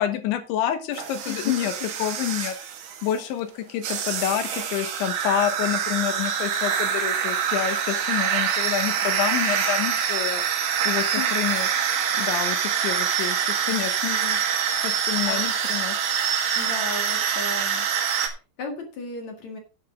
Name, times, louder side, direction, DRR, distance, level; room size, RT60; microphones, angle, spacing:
voice 1, 0.0-1.7 2.0-2.6 3.0-10.4 10.9-11.7 12.1-14.4 14.8-16.0, left 10 dB, 75° left, 9 dB, 3.3 m, -28 dB
sound 1, 0.9-3.2 3.8-18.3, right 8 dB, 70° right, 4.2 m, -25 dB
voice 2, 1.3-1.9 11.2-11.3 15.2-15.5 16.6-17.9 18.2-19.6, left 5 dB, 55° left, 4 dB, 2.2 m, -34 dB
10.5 x 10.0 x 3.8 m, 0.31 s
omnidirectional pair, 5.8 m